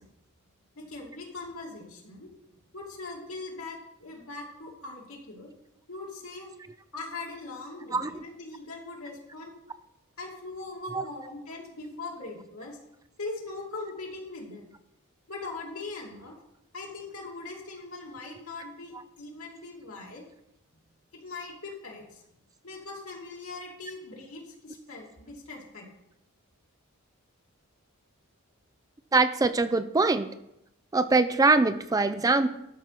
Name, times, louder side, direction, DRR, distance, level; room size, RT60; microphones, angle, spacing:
voice 1, 0.8-5.5 5.9-6.5 6.9-9.5 10.2-12.8 13.2-14.7 15.3-16.4 16.7-20.2 21.1-22.2 22.6-25.8, left 3 dB, 70° left, -2 dB, 2.6 m, -41 dB
voice 2, 29.1-30.3 30.9-32.5, right 3 dB, 15° right, 11 dB, 0.4 m, -23 dB
12.0 x 5.3 x 5.9 m, 0.83 s
head